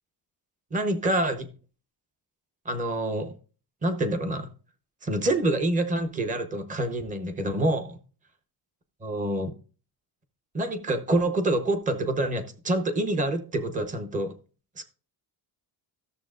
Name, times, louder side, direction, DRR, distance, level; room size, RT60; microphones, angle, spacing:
voice 1, 0.7-1.5 2.6-3.3 3.8-4.5 5.0-8.0 9.0-9.5 10.5-14.3 14.8-14.9, right 1 dB, 20° right, 9 dB, 0.9 m, -27 dB
14.0 x 7.2 x 2.5 m, 0.37 s
cardioid pair, 155°, 41 cm